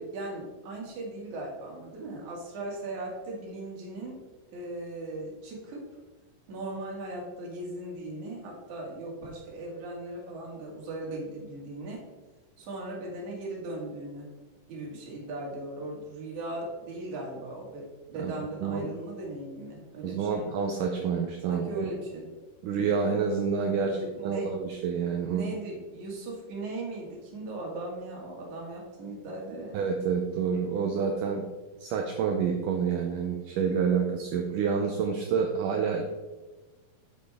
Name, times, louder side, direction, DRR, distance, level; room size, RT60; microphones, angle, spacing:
voice 1, 0.0-4.1 4.5-5.8 6.5-12.0 12.6-14.3 14.7-20.5 21.5-22.3 23.7-24.5 25.2-29.8, right 2 dB, 55° right, -2 dB, 3.2 m, -38 dB
voice 2, 20.0-21.9 22.6-25.4 29.7-31.4 31.8-36.0, right 6 dB, 80° right, 3 dB, 1.9 m, -28 dB
8.7 x 8.3 x 3.5 m, 1.2 s
omnidirectional pair, 4.5 m